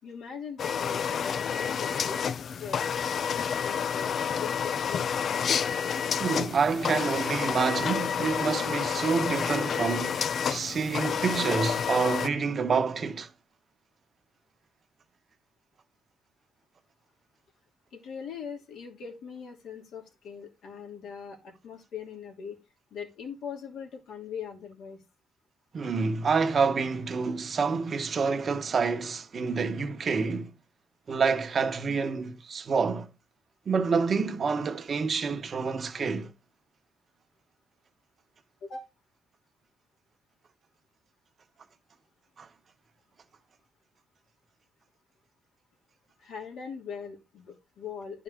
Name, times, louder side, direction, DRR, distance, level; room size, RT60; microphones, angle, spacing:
voice 1, 0.0-2.2 2.6-2.8 3.6-5.1 17.9-22.6 22.9-25.0 38.6-38.8 46.2-48.2, left 6 dB, 75° left, 2.8 m, -41 dB
sound 1, 0.6-12.3, left 7 dB, 55° left, 0.4 m, -29 dB
voice 2, 6.2-13.3 25.7-30.5 31.1-33.1 33.7-36.3 42.4-42.5, right 5 dB, 45° right, 1.1 m, -28 dB
11.0 x 4.8 x 3.6 m
cardioid pair, 90°, 0 cm